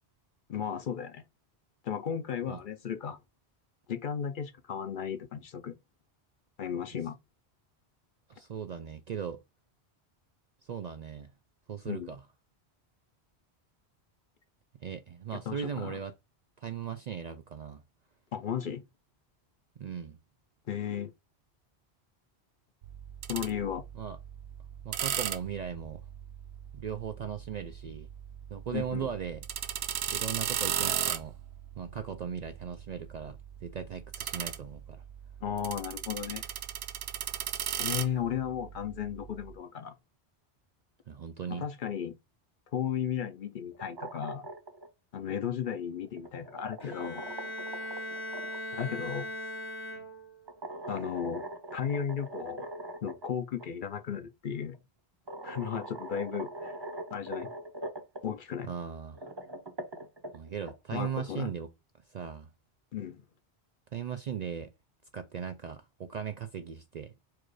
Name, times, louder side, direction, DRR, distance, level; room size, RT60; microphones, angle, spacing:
voice 1, 0.5-1.2 1.8-3.2 3.9-5.7 6.6-7.2 11.9-12.1 15.5-16.0 18.3-18.8 20.7-21.1 23.3-23.8 28.7-29.1 35.4-36.4 37.8-39.9 41.5-42.1 42.7-44.5 45.1-47.3 48.7-49.3 50.9-52.6 53.0-54.8 55.4-56.7 57.1-57.5 58.2-58.7 60.9-61.5 62.9-63.2, left 8 dB, 55° left, 0.7 m, -35 dB
voice 2, 8.3-9.4 10.6-11.3 11.7-12.2 14.8-16.1 16.6-17.8 19.8-20.2 23.9-24.2 24.8-26.0 26.7-28.1 28.5-29.4 30.1-31.4 31.8-35.0 41.1-41.7 58.6-59.2 60.3-61.7 62.1-62.5 63.9-64.7 65.1-67.1, right 7 dB, 55° right, 0.5 m, -38 dB
sound 1, 22.8-39.6, right 10 dB, 75° right, 0.8 m, -37 dB
sound 2, 43.7-44.9 46.0-48.9 50.5-53.3 53.6-53.7 54.7-54.8 55.3-58.2 59.0-60.7, right 1 dB, 25° right, 0.7 m, -42 dB
Bowed string instrument, 46.8-50.5, left 1 dB, 80° left, 1.4 m, -39 dB
4.6 x 2.4 x 4.6 m
omnidirectional pair, 1.1 m